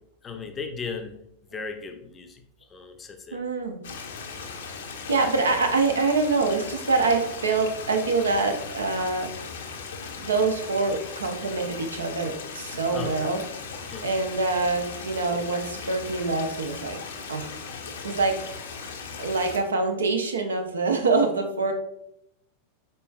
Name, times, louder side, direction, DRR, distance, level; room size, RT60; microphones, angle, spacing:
voice 1, 0.2-1.1 1.5-2.4 2.7-3.4 12.9-13.3 13.9-14.1, left 5 dB, 20° left, 6 dB, 0.6 m, -36 dB
voice 2, 3.3-3.8 4.5-4.6 5.1-9.3 10.2-13.4 14.0-17.0 17.3-17.5 18.0-18.4 19.2-21.7, right 3 dB, 70° right, 4 dB, 0.6 m, -25 dB
Stream, 3.8-19.6, left 5 dB, 60° left, 0.6 m, -38 dB
5.3 x 4.2 x 2.3 m, 0.78 s
figure-of-eight pair, 90°, 0 cm